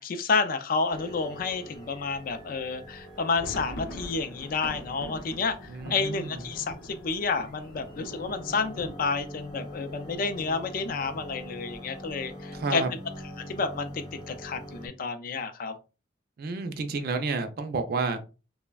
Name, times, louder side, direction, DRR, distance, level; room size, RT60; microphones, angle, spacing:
voice 1, 0.0-12.8 13.5-15.7, left 4 dB, 50° left, 0.3 m, -30 dB
sound 1, 0.9-14.9, equal, 25° left, 0.8 m, -44 dB
sound 2, 3.0-10.7 11.1-11.2 11.4-11.7 12.2-12.7, equal, 90° left, 0.7 m, -43 dB
voice 2, 5.7-6.4 12.5-12.9 16.4-18.2, right 4 dB, 50° right, 0.4 m, -30 dB
3.2 x 2.0 x 2.2 m
head